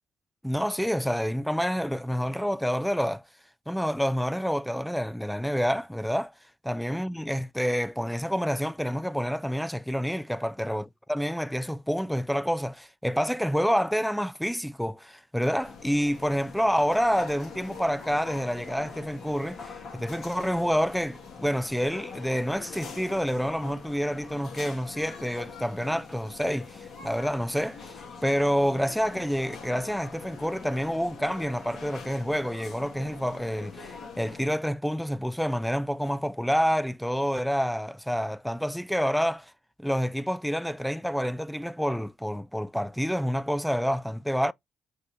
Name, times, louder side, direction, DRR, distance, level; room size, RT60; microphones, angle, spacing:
voice 1, 0.4-3.2 3.7-6.3 6.6-27.9 28.2-39.5 39.8-44.5, equal, ahead, 0.4 m, -28 dB
sound 1, 15.6-34.5, left 5 dB, 50° left, 2.1 m, -44 dB
5.2 x 2.7 x 3.2 m
hypercardioid pair, 45°, 0 cm